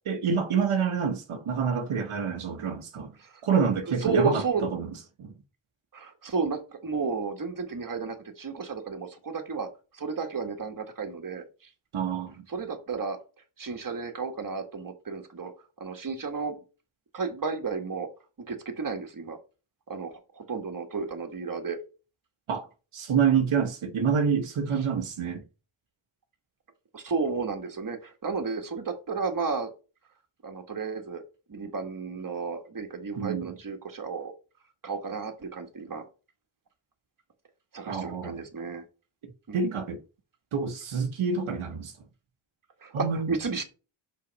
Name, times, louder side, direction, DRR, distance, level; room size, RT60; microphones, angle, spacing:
voice 1, 0.0-3.1 3.4-4.9 5.2-5.3 11.9-12.3 22.5-22.7 22.9-25.4 33.2-33.5 37.9-38.4 39.5-40.0 40.5-41.9 42.9-43.3, right 6 dB, 80° right, 1.2 m, -27 dB
voice 2, 4.0-4.7 5.9-11.7 12.5-13.2 13.6-15.5 15.8-16.6 17.1-18.1 18.4-19.4 19.9-21.8 24.7-24.8 26.9-29.7 30.4-34.3 34.8-36.1 37.7-38.8 39.5-39.7 42.8-43.6, right 5 dB, 40° right, 1.7 m, -32 dB
5.7 x 4.2 x 5.4 m
cardioid pair, 70°, 48 cm